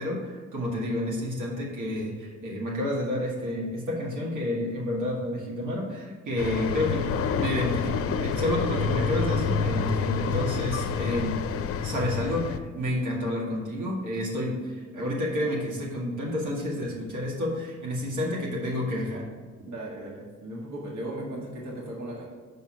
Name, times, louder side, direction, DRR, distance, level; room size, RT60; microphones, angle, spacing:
voice 1, 0.0-11.4 11.8-19.3, left 1 dB, 90° right, -3 dB, 1.9 m, -30 dB
sound 1, 6.4-12.6, left 6 dB, 50° left, 0.5 m, -28 dB
voice 2, 19.7-22.3, right 1 dB, 65° right, -3 dB, 1.6 m, -37 dB
6.3 x 4.5 x 6.2 m, 1.5 s
cardioid pair, 90°, 30 cm